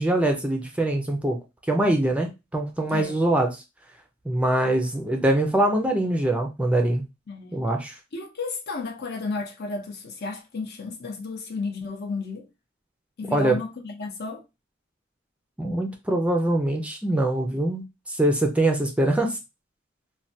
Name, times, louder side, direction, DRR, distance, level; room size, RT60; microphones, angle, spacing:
voice 1, 0.0-1.4 1.7-3.5 4.3-7.0 7.5-7.9 13.3-13.6 15.6-19.4, right 1 dB, 5° right, 0.4 m, -23 dB
voice 2, 7.3-7.6 8.1-12.5 13.2-14.4, left 3 dB, 55° left, 0.7 m, -33 dB
3.1 x 2.2 x 2.7 m
head